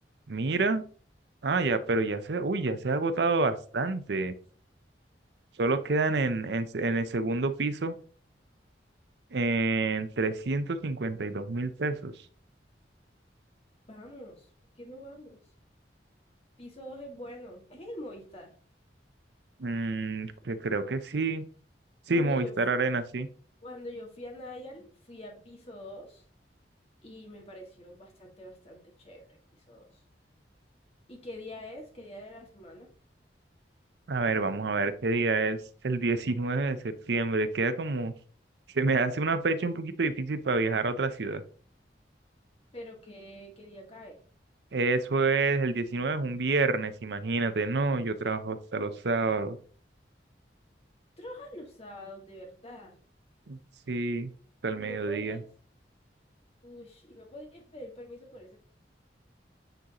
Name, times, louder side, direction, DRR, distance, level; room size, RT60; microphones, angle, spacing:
voice 1, 0.3-0.8 1.4-4.3 5.6-7.9 9.3-12.1 19.6-21.4 22.1-23.3 34.1-35.6 35.8-38.1 38.7-41.4 44.7-49.6 53.5-53.6 53.9-54.3 54.6-55.4, right 3 dB, 70° right, 11 dB, 0.6 m, -28 dB
voice 2, 13.9-14.4 14.8-15.4 16.6-18.5 22.1-22.5 23.6-26.2 27.0-29.2 29.7-29.9 31.1-32.9 42.7-44.2 51.2-53.0 54.8-55.4 56.6-58.6, left 1 dB, 35° left, 0 dB, 1.8 m, -44 dB
9.0 x 4.0 x 2.9 m, 0.43 s
head